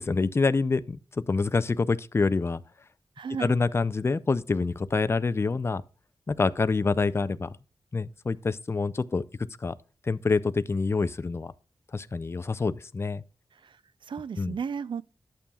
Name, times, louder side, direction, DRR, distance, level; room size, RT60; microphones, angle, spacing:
voice 1, 0.0-2.6 3.4-5.8 6.3-7.5 7.9-9.2 9.6-9.7 10.0-11.5 11.9-13.2 14.4-14.6, left 4 dB, 30° left, 0.4 m, -26 dB
voice 2, 3.2-3.5 13.5-15.0, right 6 dB, 65° right, 0.4 m, -35 dB
11.5 x 6.9 x 2.3 m
wide cardioid pair, 125°, 9 cm